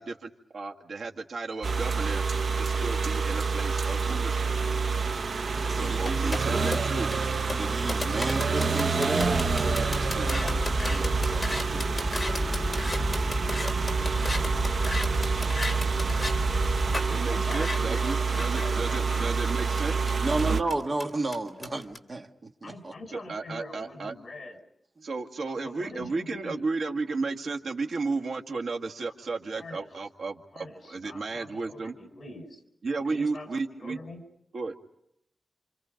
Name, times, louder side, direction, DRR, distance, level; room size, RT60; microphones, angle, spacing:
voice 1, 0.0-2.2 2.6-4.6 5.6-7.1 17.1-20.1 23.1-24.1 25.0-31.9 32.8-34.0 34.5-34.7, right 3 dB, 85° right, 2.1 m, -34 dB
sound 1, 1.6-20.6, right 4 dB, 60° right, 0.9 m, -28 dB
voice 2, 5.7-6.5 7.6-10.6 10.9-12.0 20.2-22.9, right 2 dB, 40° right, 1.8 m, -33 dB
sound 2, 6.1-16.4 16.9-17.1 17.5-22.0, left 2 dB, 15° left, 3.7 m, -35 dB
sound 3, 9.2-16.9, equal, 15° right, 3.7 m, -32 dB
voice 3, 17.1-19.0 22.6-24.6 25.5-26.7 29.6-29.9 30.5-32.6 33.1-33.5 33.8-34.2, left 1 dB, 50° left, 4.9 m, -43 dB
29.0 x 27.0 x 5.2 m
wide cardioid pair, 125°, 0 cm